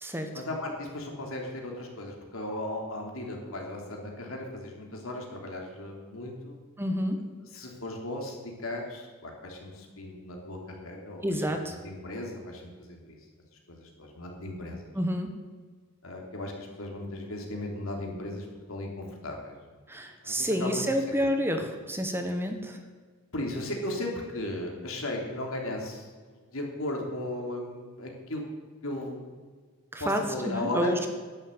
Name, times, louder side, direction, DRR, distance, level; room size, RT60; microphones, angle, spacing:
voice 1, 0.3-6.6 7.5-13.2 13.7-14.9 16.0-19.6 20.2-21.3 23.3-28.4 28.8-29.3 30.0-31.0, left 1 dB, 70° left, 1 dB, 3.2 m, -36 dB
voice 2, 6.8-7.2 11.2-11.8 14.9-15.3 19.9-22.8 29.9-31.1, equal, 10° right, 5 dB, 1.3 m, -29 dB
11.0 x 11.0 x 8.0 m, 1.5 s
head